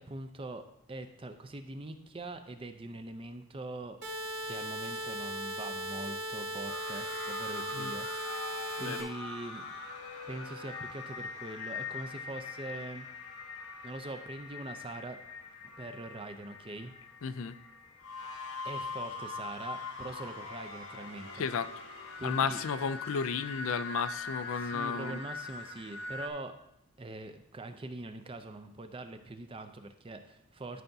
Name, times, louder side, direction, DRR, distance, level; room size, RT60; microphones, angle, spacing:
voice 1, 0.0-4.1 4.4-8.1 8.4-9.7 10.3-13.1 13.8-15.2 15.6-16.9 18.6-21.5 22.2-22.6 24.6-26.6 27.0-30.8, right 2 dB, 25° right, 8 dB, 0.5 m, -43 dB
sound 1, 4.0-9.0, right 1 dB, 50° right, 1.5 m, -38 dB
sound 2, 6.7-26.3, left 3 dB, 85° left, 1.3 m, -42 dB
voice 2, 17.2-17.6 21.3-21.7 22.2-25.2, left 6 dB, 65° left, 14 dB, 0.4 m, -33 dB
12.5 x 5.7 x 2.7 m, 0.80 s
head